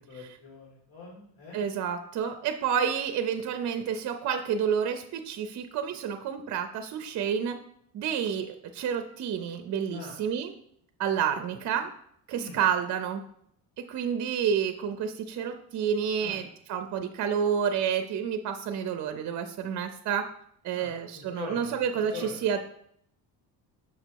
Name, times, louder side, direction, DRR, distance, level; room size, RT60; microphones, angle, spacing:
voice 1, 0.1-1.6 9.9-10.1 12.3-12.6 16.2-16.4 20.7-21.8 22.1-22.4, left 3 dB, 70° left, -5 dB, 2.4 m, -42 dB
voice 2, 1.5-7.6 7.9-10.5 11.0-11.9 12.3-13.2 13.9-20.2 20.6-22.6, right 7 dB, 50° right, 7 dB, 0.5 m, -29 dB
6.1 x 4.0 x 4.5 m, 0.68 s
cardioid pair, 150°, 39 cm